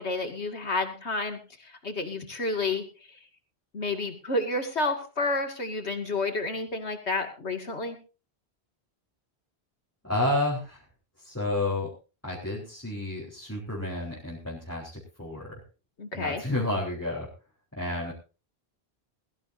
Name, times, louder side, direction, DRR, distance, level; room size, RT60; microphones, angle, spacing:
voice 1, 0.0-2.8 3.7-8.0 16.0-16.4, left 2 dB, 85° left, 6 dB, 2.7 m, -30 dB
voice 2, 10.0-10.8 11.2-11.9 12.2-15.6 16.1-17.3 17.8-18.1, left 1 dB, 15° left, -4 dB, 4.4 m, -30 dB
21.5 x 14.5 x 2.7 m, 0.33 s
omnidirectional pair, 1.1 m